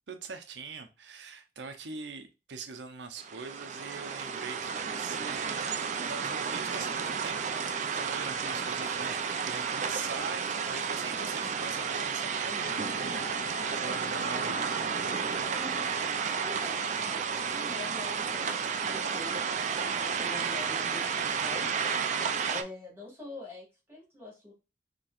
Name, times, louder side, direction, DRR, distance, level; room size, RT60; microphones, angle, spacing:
voice 1, 0.1-5.7 6.1-15.0, right 4 dB, 85° right, 7 dB, 0.7 m, -42 dB
sound 1, 3.2-22.6, right 6 dB, 40° right, 0.4 m, -32 dB
sound 2, 3.5-15.7, equal, 25° left, 1.4 m, -55 dB
voice 2, 11.1-11.5 12.7-12.9 15.4-15.9 16.4-21.7 22.5-24.5, left 2 dB, 15° right, -4 dB, 2.2 m, -45 dB
sound 3, 12.5-20.0, left 7 dB, 5° left, 1.2 m, -51 dB
4.3 x 3.0 x 2.4 m, 0.28 s
head